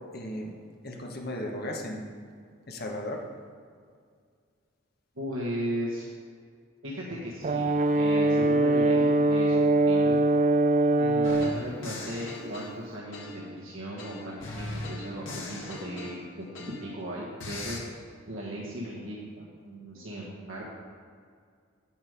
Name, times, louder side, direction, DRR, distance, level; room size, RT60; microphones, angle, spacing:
voice 1, 0.1-0.5 0.8-2.1 2.7-3.2 19.9-20.0, left 1 dB, 50° left, 1 dB, 1.3 m, -35 dB
voice 2, 5.1-6.1 6.8-10.3 10.9-20.6, equal, 75° right, -5 dB, 1.4 m, -37 dB
Brass instrument, 7.4-11.6, right 2 dB, 35° right, 0.3 m, -22 dB
sound 1, 11.2-13.6 14.0-17.0 17.4-17.8, left 2 dB, 70° left, 1.8 m, -39 dB
8.9 x 7.2 x 5.2 m, 2.1 s
head